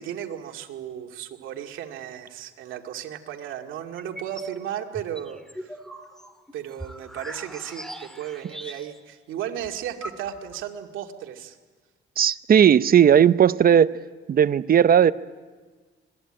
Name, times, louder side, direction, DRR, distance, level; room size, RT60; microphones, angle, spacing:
voice 1, 0.0-5.4 6.5-11.6, right 10 dB, 85° right, 3 dB, 2.2 m, -35 dB
sound 1, 4.0-4.6 4.9-9.1 9.4-9.5 9.6-10.6, equal, ahead, 2.1 m, -40 dB
voice 2, 12.2-13.9 14.3-15.1, right 9 dB, 50° right, 14 dB, 0.8 m, -16 dB
25.5 x 20.0 x 8.9 m, 1.4 s
cardioid pair, 90°, 20 cm